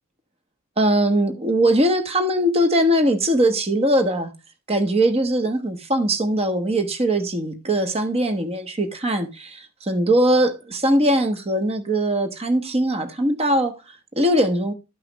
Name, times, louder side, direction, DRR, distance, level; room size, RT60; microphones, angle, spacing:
voice 1, 0.8-4.3 4.7-13.7 14.1-14.7, right 1 dB, 30° right, 1.1 m, -21 dB
12.5 x 5.7 x 3.1 m
head